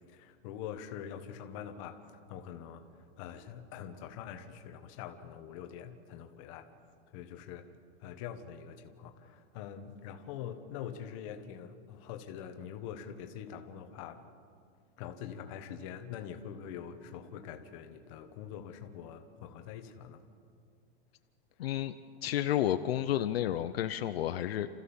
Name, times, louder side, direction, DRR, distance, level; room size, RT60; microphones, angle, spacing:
voice 1, 0.1-6.7 7.1-7.7 8.0-14.2 15.0-20.2, left 8 dB, 30° left, 6 dB, 1.3 m, -44 dB
voice 2, 21.6-21.9 22.2-24.7, left 12 dB, 60° left, 9 dB, 0.8 m, -31 dB
29.5 x 14.5 x 7.1 m, 2.3 s
supercardioid pair, 180°, 33 cm